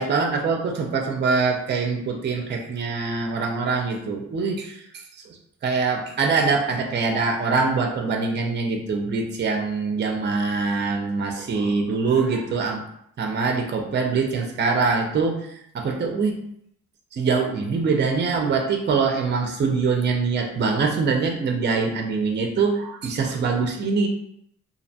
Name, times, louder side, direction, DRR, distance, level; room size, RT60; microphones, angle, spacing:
voice 1, 0.0-4.8 5.3-5.4 5.6-12.8 13.2-16.4 17.1-24.1, right 4 dB, 35° right, 2 dB, 0.4 m, -24 dB
2.5 x 2.1 x 2.7 m, 0.72 s
wide cardioid pair, 135°, 30 cm